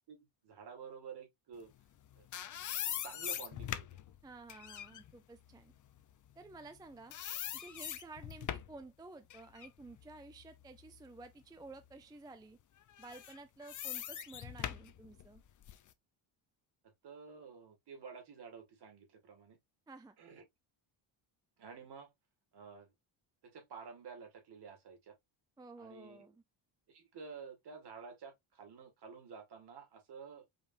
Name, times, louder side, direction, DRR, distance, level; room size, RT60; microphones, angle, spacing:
voice 1, 0.1-1.7 2.2-2.3 3.0-4.0 16.8-19.6 20.2-20.4 21.6-22.1 22.5-22.9 23.4-25.2 25.8-26.3 26.9-30.5, right 5 dB, 55° right, 2.2 m, -51 dB
sound 1, 1.9-6.8 7.1-8.8 9.3-11.3 11.7-11.9 12.9-15.9, left 10 dB, 40° left, 0.6 m, -42 dB
voice 2, 4.2-5.7 6.4-7.1 7.5-12.6 13.0-15.4 19.9-20.2 25.6-26.4, right 3 dB, 10° right, 0.4 m, -52 dB
5.2 x 3.4 x 2.6 m
cardioid pair, 125°, 48 cm